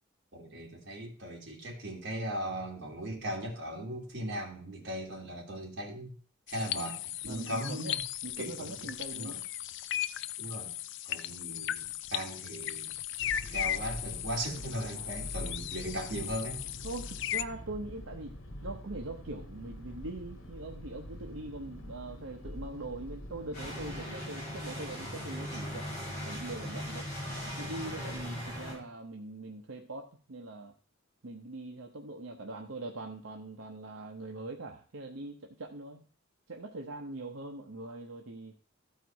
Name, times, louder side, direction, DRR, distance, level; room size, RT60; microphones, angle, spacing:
voice 1, 0.3-6.1 6.5-8.0 8.4-8.9 9.1-9.4 10.4-10.7 11.0-12.9 13.5-16.6, right 1 dB, 60° right, -2 dB, 2.6 m, -38 dB
sound 1, 6.5-17.4, left 12 dB, 65° left, 0.4 m, -37 dB
voice 2, 7.3-9.4 14.5-15.3 16.8-25.9 26.2-27.1 27.6-30.7 31.2-36.0 36.5-38.6, right 2 dB, 85° right, 2 dB, 0.9 m, -42 dB
sound 2, 13.2-24.1, equal, 80° left, 1.4 m, -45 dB
sound 3, 23.5-28.7, equal, 40° left, 5.3 m, -39 dB
13.5 x 4.6 x 4.6 m, 0.41 s
head